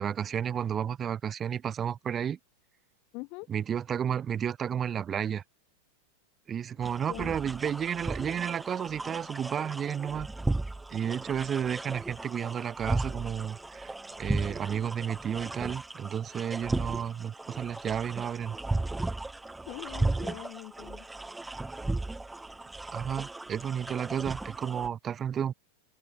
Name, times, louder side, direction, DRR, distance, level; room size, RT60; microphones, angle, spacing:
voice 1, 0.0-2.4 3.5-5.4 6.5-10.3 10.9-18.6 22.9-25.5, right 8 dB, 25° right, 2.5 m, -32 dB
voice 2, 3.1-3.5 7.1-7.3 19.7-21.1, left 29 dB, 45° left, 2.0 m, -42 dB
sound 1, 6.8-24.9, right 2 dB, 5° right, 3.5 m, -35 dB
open air
figure-of-eight pair, 90°, 0 cm